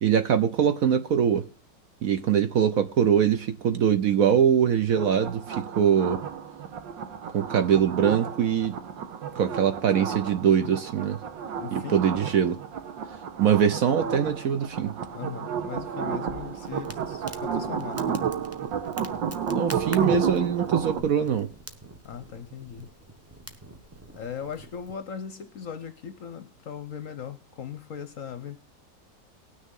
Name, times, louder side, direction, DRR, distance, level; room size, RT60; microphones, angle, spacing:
voice 1, 0.0-1.5 2.0-6.2 7.3-8.7 9.4-11.2 11.7-12.6 13.4-14.9 19.5-21.5, right 8 dB, 60° right, 1.0 m, -23 dB
sound 1, 4.9-21.0, right 7 dB, 85° right, 1.8 m, -32 dB
voice 2, 11.6-12.0 15.1-18.2 22.0-22.9 24.1-28.6, left 8 dB, 60° left, 0.9 m, -38 dB
Crackle, 16.3-24.9, right 1 dB, 15° right, 0.6 m, -46 dB
19.0 x 6.5 x 3.7 m
omnidirectional pair, 2.0 m